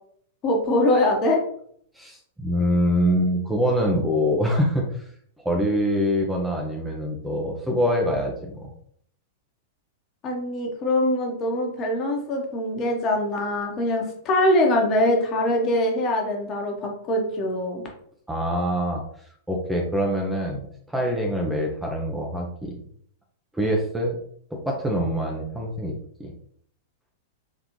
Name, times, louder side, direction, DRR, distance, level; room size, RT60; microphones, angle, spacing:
voice 1, 0.4-1.4 10.2-17.8, left 1 dB, 35° left, 1 dB, 1.2 m, -23 dB
voice 2, 1.9-5.0 5.4-8.7 18.3-19.0 19.5-22.8 23.5-24.2 24.5-26.3, equal, 5° right, 0 dB, 0.8 m, -24 dB
4.0 x 3.3 x 3.1 m, 0.63 s
figure-of-eight pair, 100°, 0 cm